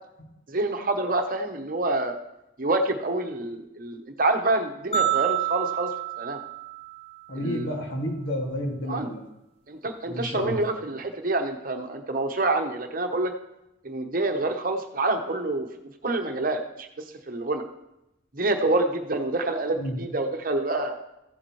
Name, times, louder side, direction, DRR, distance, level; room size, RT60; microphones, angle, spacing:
voice 1, 0.5-2.2 2.6-5.9 6.2-6.4 7.4-7.8 8.9-9.1 9.7-13.3 13.8-15.7 16.0-16.6 17.3-17.6 18.3-21.0, right 2 dB, 45° right, 5 dB, 0.9 m, -27 dB
sound 1, 4.9-7.3, right 12 dB, 30° left, 0.8 m, -28 dB
voice 2, 7.3-9.2 10.0-10.6 19.8-20.0, equal, 85° left, 0 dB, 2.1 m, -31 dB
15.0 x 7.3 x 3.1 m, 0.89 s
head